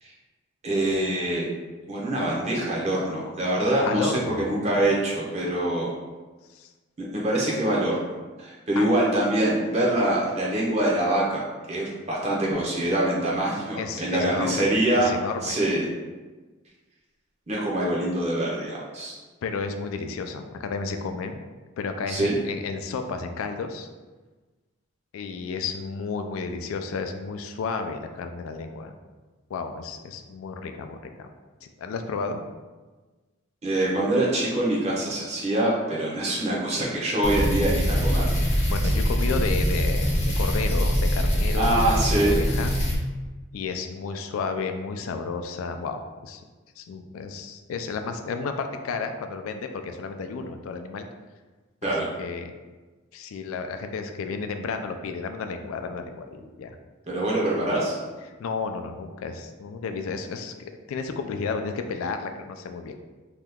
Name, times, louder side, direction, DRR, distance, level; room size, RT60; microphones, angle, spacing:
voice 1, 0.6-1.5 1.9-5.9 7.0-8.0 8.4-15.1 15.4-15.8 17.5-19.1 22.1-22.4 33.6-38.3 41.5-42.4 51.8-52.1 57.1-57.9, right 1 dB, 30° right, -4 dB, 0.6 m, -24 dB
voice 2, 3.9-4.8 6.5-6.7 8.8-8.9 13.8-15.6 19.4-21.4 21.8-23.9 25.1-28.9 29.5-31.3 31.6-32.4 38.6-42.7 43.5-46.4 46.8-51.1 52.2-52.5 53.1-56.8 57.5-57.8 58.4-63.0, left 4 dB, 85° left, 7 dB, 0.3 m, -32 dB
sound 1, 37.2-43.0, equal, 35° left, 0.6 m, -23 dB
2.8 x 2.2 x 3.5 m, 1.3 s
head